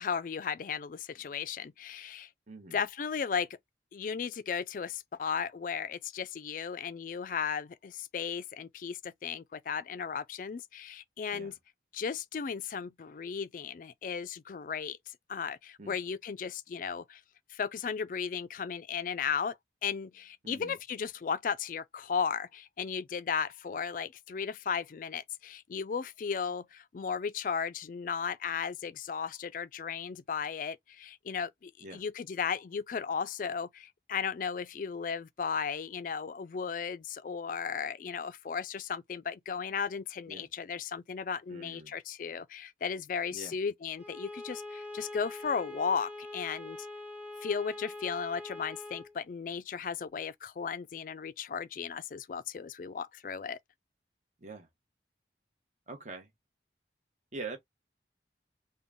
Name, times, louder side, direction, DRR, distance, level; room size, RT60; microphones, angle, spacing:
voice 1, 0.0-2.3 2.7-3.5 3.9-11.5 11.9-17.2 17.5-19.6 19.8-46.8 47.4-53.6, left 6 dB, 50° left, 0.3 m, -35 dB
voice 2, 2.5-2.8 11.3-11.5 15.8-15.9 20.4-20.8 31.8-32.0 40.3-40.5 41.5-41.9 43.3-43.6 54.4-54.7 55.9-56.3 57.3-57.6, right 3 dB, 40° right, 1.0 m, -44 dB
Bowed string instrument, 44.0-49.2, left 2 dB, 10° right, 0.8 m, -43 dB
3.8 x 2.2 x 3.5 m
head